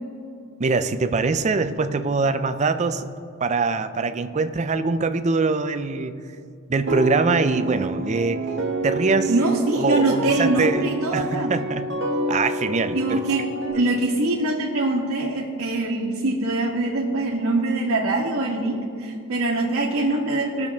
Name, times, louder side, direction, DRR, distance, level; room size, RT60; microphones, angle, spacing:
voice 1, 0.6-3.1 3.4-6.2 6.7-8.5 8.8-9.3 9.8-11.9 12.3-13.2, right 4 dB, 30° right, 10 dB, 0.4 m, -23 dB
sound 1, 6.9-13.7, right 1 dB, 55° right, 1.1 m, -28 dB
voice 2, 9.3-11.5 12.9-13.5 13.7-20.7, right 2 dB, 85° right, -5 dB, 1.3 m, -23 dB
18.5 x 6.7 x 3.5 m, 2.5 s
head